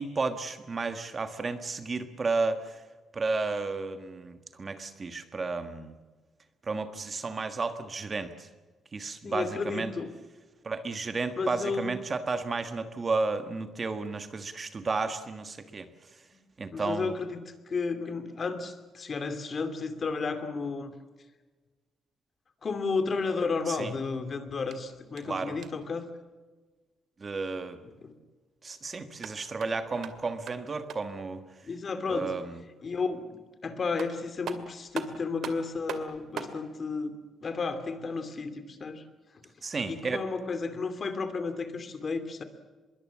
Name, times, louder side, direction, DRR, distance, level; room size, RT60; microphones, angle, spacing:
voice 1, 0.0-2.8 3.1-5.9 6.6-8.5 8.9-9.9 10.6-15.9 16.6-17.1 23.7-23.9 25.2-25.6 27.2-27.8 28.6-31.4 32.1-32.6 39.6-40.2, right 3 dB, 30° right, 9 dB, 1.5 m, -32 dB
voice 2, 9.2-10.1 11.4-11.9 16.7-17.4 17.7-20.9 22.6-26.1 28.0-28.1 31.6-32.3 32.8-37.1 37.4-39.0 39.9-42.4, left 4 dB, 35° left, 9 dB, 2.6 m, -32 dB
sound 1, 24.7-26.0 29.0-31.2 33.5-33.6 34.0-36.6, right 7 dB, 65° right, 2.3 m, -42 dB
25.0 x 22.5 x 7.4 m, 1.3 s
cardioid pair, 150°, 0 cm